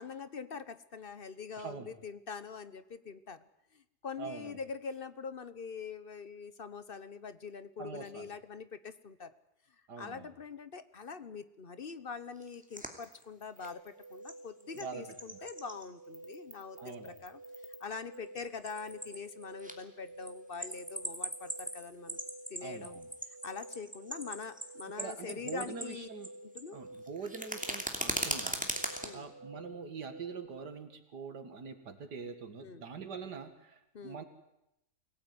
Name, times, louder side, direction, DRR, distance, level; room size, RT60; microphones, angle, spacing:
voice 1, 0.0-3.4 3.7-9.3 10.0-17.4 17.8-22.2 22.5-23.0 23.4-26.1 26.4-26.8 29.0-29.3 32.6-32.9 33.9-34.2, left 5 dB, 40° left, 13 dB, 1.0 m, -44 dB
voice 2, 1.6-1.9 4.2-4.6 7.8-8.3 9.9-10.3 14.7-15.0 16.8-17.2 22.6-23.1 25.0-26.3 26.7-34.2, right 5 dB, 90° right, 8 dB, 2.4 m, -44 dB
sound 1, 12.4-14.3 14.6-15.8 16.1-17.8 18.1-19.7 20.1-26.3 26.5-29.1, equal, 5° right, 2.7 m, -39 dB
sound 2, 13.6-30.5, right 1 dB, 45° right, 3.2 m, -51 dB
23.5 x 17.5 x 9.5 m, 0.87 s
omnidirectional pair, 1.7 m